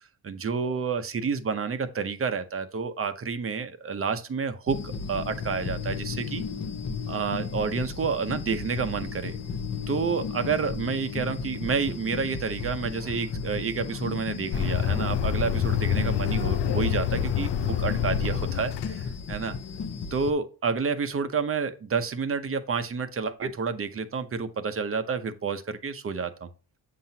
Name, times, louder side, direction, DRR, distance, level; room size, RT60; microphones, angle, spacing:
voice 1, 0.2-6.4 7.1-9.4 9.9-19.6 20.1-26.5, right 5 dB, 35° right, 0.8 m, -29 dB
sound 1, 4.7-20.3, left 5 dB, 40° left, 0.8 m, -35 dB
sound 2, 14.5-19.2, left 9 dB, 85° left, 0.6 m, -27 dB
8.4 x 5.8 x 2.8 m
cardioid pair, 130°, 41 cm